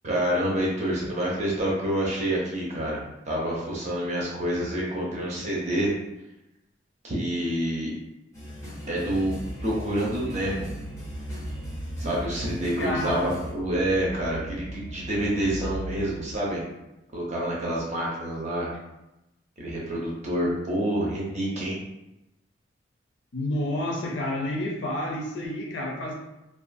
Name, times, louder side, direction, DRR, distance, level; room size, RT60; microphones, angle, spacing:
voice 1, 0.0-5.9 7.0-7.9 8.9-9.3 9.6-10.7 12.0-16.6 17.1-18.7 19.6-21.8, right 1 dB, 35° right, -4 dB, 0.6 m, -27 dB
sound 1, 8.3-13.5, left 1 dB, 15° left, 0.6 m, -40 dB
sound 2, 9.0-16.3, right 1 dB, 90° right, 0.6 m, -39 dB
voice 2, 12.8-13.3 23.3-26.1, left 1 dB, 65° left, -1 dB, 0.5 m, -29 dB
2.4 x 2.3 x 2.5 m, 0.94 s
head